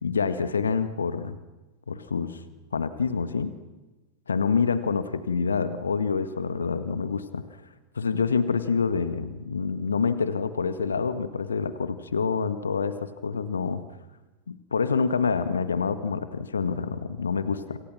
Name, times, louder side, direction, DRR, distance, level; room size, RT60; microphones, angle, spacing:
voice 1, 0.0-1.4 1.9-2.4 2.7-3.5 4.3-7.4 8.0-13.8 14.5-17.8, left 5 dB, 70° left, 12 dB, 1.8 m, -27 dB
29.0 x 27.5 x 6.2 m, 1.1 s
figure-of-eight pair, 90°, 0 cm